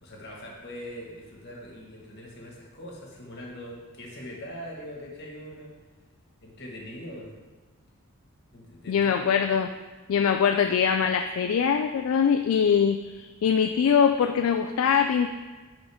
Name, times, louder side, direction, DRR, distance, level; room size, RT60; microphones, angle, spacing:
voice 1, 0.0-5.7 6.4-7.3 8.5-9.4, equal, 50° left, -2 dB, 1.6 m, -42 dB
voice 2, 8.9-9.7 10.1-15.3, left 7 dB, 70° left, 6 dB, 0.3 m, -23 dB
10.0 x 3.8 x 3.6 m, 1.3 s
head